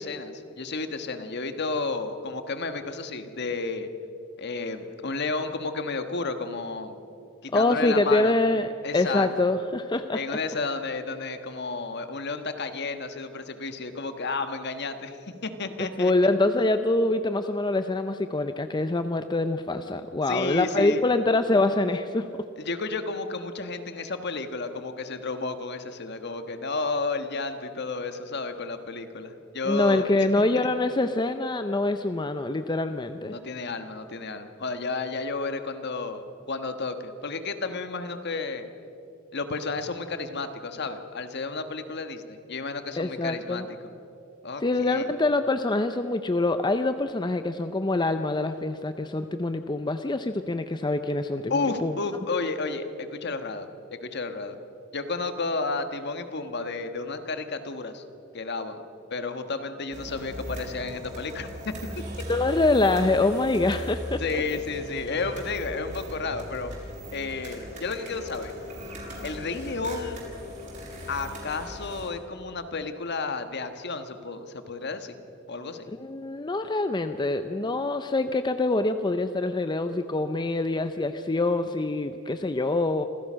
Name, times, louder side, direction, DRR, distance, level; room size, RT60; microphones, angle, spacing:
voice 1, 0.0-3.9 4.4-7.0 7.4-8.3 8.8-9.3 10.1-15.2 15.4-16.1 20.3-21.0 22.6-30.1 30.5-30.7 33.3-38.7 39.3-43.6 44.4-45.1 51.5-53.7 54.0-54.6 54.9-58.0 58.3-58.8 59.1-61.8 64.2-66.7 67.1-68.5 69.2-70.2 71.1-75.2 75.5-75.9, left 3 dB, 55° left, 8 dB, 1.4 m, -32 dB
voice 2, 7.5-10.4 16.0-22.3 29.7-33.3 43.0-43.6 44.6-51.9 62.3-64.2 75.9-83.1, left 2 dB, 20° left, 9 dB, 0.6 m, -25 dB
sound 1, 59.9-72.1, equal, 40° right, 6.4 m, -39 dB
26.5 x 16.0 x 6.3 m, 2.7 s
head